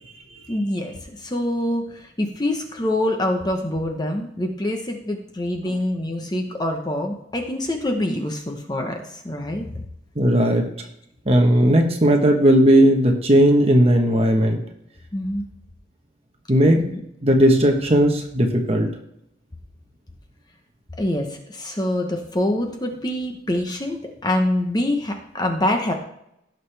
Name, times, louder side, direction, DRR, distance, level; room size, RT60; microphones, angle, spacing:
voice 1, 0.5-9.8 15.1-15.4 16.7-17.0 21.0-25.9, left 1 dB, 20° left, 3 dB, 1.0 m, -25 dB
voice 2, 10.2-10.7 11.3-14.6 16.5-16.8 17.2-18.9, equal, 30° right, 3 dB, 1.2 m, -16 dB
17.0 x 6.5 x 3.4 m, 0.78 s
head